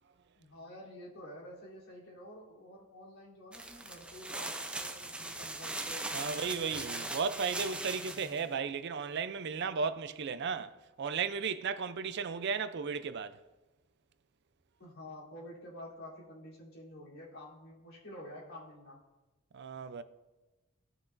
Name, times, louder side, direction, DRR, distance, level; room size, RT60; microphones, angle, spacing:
voice 1, 0.3-7.2 7.5-8.3 14.8-19.0, left 1 dB, 85° left, 3.3 m, -49 dB
sound 1, 3.5-8.4, right 2 dB, 5° right, 0.5 m, -40 dB
voice 2, 6.1-10.7 11.0-13.4 19.5-20.0, right 5 dB, 55° right, 0.4 m, -35 dB
16.5 x 6.0 x 2.6 m
head